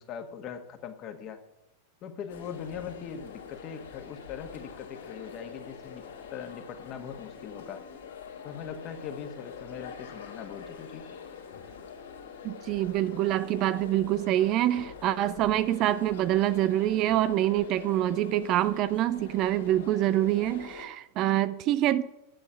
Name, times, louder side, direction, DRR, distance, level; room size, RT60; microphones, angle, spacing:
voice 1, 0.0-1.4 2.0-6.0 6.3-7.8 8.4-11.2, left 7 dB, 35° left, 1.7 m, -41 dB
sound 1, 2.3-20.9, left 6 dB, 60° left, 2.7 m, -45 dB
voice 2, 12.4-22.0, right 13 dB, 35° right, 0.6 m, -26 dB
11.5 x 8.3 x 9.2 m
figure-of-eight pair, 90°, 0 cm